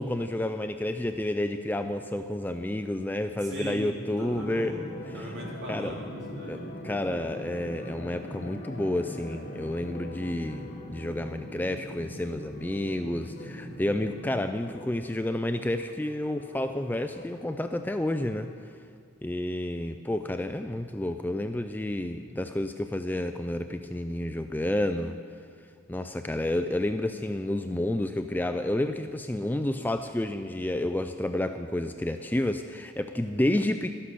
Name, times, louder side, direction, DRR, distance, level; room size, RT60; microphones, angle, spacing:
voice 1, 0.0-4.8 5.1-5.3 5.7-5.9 6.5-18.5 19.2-25.2 25.9-33.9, left 1 dB, 10° left, 8 dB, 0.3 m, -30 dB
voice 2, 3.4-6.7 33.3-33.5, right 1 dB, 55° right, -4 dB, 3.5 m, -39 dB
sound 1, 4.2-14.3, equal, 60° left, 3.4 m, -42 dB
sound 2, 4.2-18.5, left 2 dB, 45° left, 1.3 m, -48 dB
12.5 x 11.0 x 6.8 m, 2.2 s
head